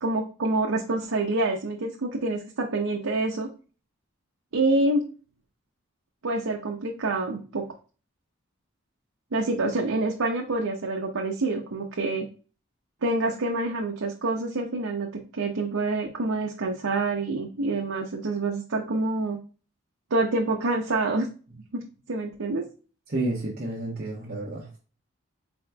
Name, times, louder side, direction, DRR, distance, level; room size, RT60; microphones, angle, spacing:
voice 1, 0.0-3.5 4.5-5.1 6.2-7.7 9.3-12.3 13.0-15.1 15.3-19.4 20.1-21.3 21.7-21.8 22.1-22.7, right 2 dB, 90° right, 1 dB, 0.7 m, -27 dB
voice 2, 23.1-24.7, right 2 dB, 45° right, -5 dB, 1.0 m, -30 dB
4.3 x 4.1 x 2.2 m, 0.36 s
head